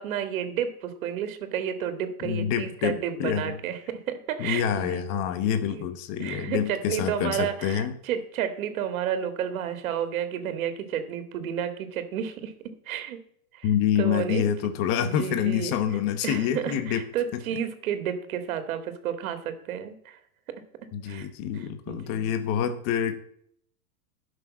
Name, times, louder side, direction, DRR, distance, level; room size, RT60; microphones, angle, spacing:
voice 1, 0.0-5.1 5.7-5.9 6.2-13.2 13.5-13.7 14.0-14.4 15.0-15.7 16.2-20.2 21.1-21.3 21.5-22.3, right 9 dB, 75° right, 10 dB, 2.1 m, -31 dB
voice 2, 2.2-3.6 4.4-7.9 13.6-17.0 17.3-17.4 20.9-23.2, left 9 dB, 35° left, 9 dB, 1.0 m, -27 dB
12.0 x 6.5 x 7.3 m, 0.66 s
supercardioid pair, 170°, 42 cm